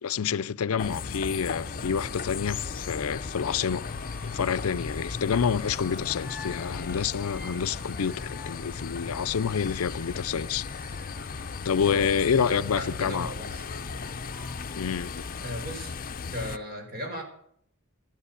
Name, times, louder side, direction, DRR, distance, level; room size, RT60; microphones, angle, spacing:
voice 1, 0.0-3.8 4.3-10.7 11.6-13.3 14.8-15.2, left 7 dB, 85° left, 0.5 m, -28 dB
Musical instrument, 0.7-16.6, right 1 dB, 75° right, 2.6 m, -54 dB
sound 1, 0.8-16.6, left 5 dB, 40° left, 0.6 m, -36 dB
sound 2, 5.5-9.7, left 4 dB, 5° right, 1.8 m, -48 dB
voice 2, 11.8-13.7 15.4-15.9 16.3-17.2, equal, 45° right, 4.9 m, -36 dB
13.5 x 9.9 x 8.3 m
head